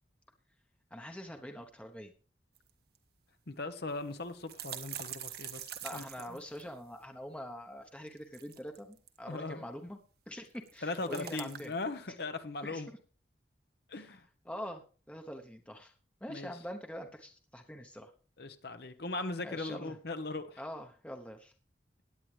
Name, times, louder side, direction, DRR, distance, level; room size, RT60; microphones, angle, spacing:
voice 1, 0.9-2.1 5.8-10.0 10.3-11.7 12.6-13.0 14.0-14.1 14.4-15.9 16.2-18.1 19.4-20.0 20.6-21.5, equal, 5° left, 4 dB, 0.9 m, -44 dB
sound 1, 2.6-2.7 3.0-3.1 3.9-7.0 8.1-9.2 10.5-11.8, right 10 dB, 65° right, 1.2 m, -44 dB
voice 2, 3.5-6.4 9.3-9.6 10.8-12.9 13.9-14.3 16.3-16.5 18.4-20.6, left 3 dB, 65° left, 9 dB, 1.1 m, -39 dB
17.0 x 9.9 x 3.3 m, 0.36 s
head